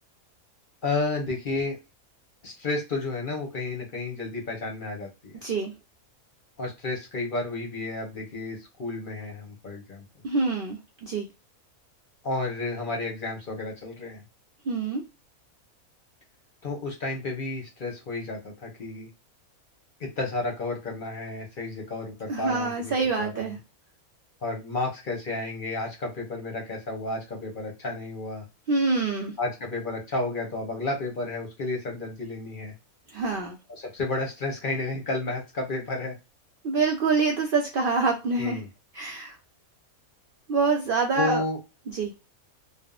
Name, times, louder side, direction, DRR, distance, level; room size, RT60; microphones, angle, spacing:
voice 1, 0.8-1.8 2.4-5.3 6.6-10.0 12.2-14.2 16.6-19.1 20.0-22.9 23.2-23.5 24.4-28.4 29.4-32.7 33.7-36.1 38.4-38.7 41.2-41.6, left 3 dB, 45° left, 1 dB, 0.8 m, -31 dB
voice 2, 5.4-5.7 10.2-11.3 14.7-15.0 22.3-23.6 28.7-29.3 33.1-33.6 36.6-38.6 38.9-39.4 40.5-41.4 41.9-42.1, right 4 dB, 90° right, 1 dB, 0.4 m, -26 dB
3.4 x 2.0 x 2.3 m, 0.26 s
omnidirectional pair, 1.5 m